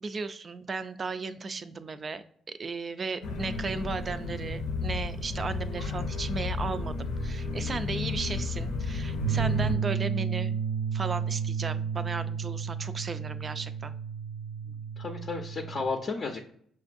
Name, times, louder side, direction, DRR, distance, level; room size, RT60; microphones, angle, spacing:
voice 1, 0.0-10.6 10.9-13.9, right 4 dB, 40° right, 11 dB, 0.4 m, -35 dB
sound 1, 3.2-9.8, left 3 dB, 90° left, 0.6 m, -33 dB
sound 2, 9.2-15.8, right 7 dB, 85° right, 0.6 m, -32 dB
voice 2, 14.6-16.4, left 3 dB, 50° left, 1 dB, 0.5 m, -33 dB
6.0 x 2.6 x 2.5 m, 0.64 s
cardioid pair, 90°, 0 cm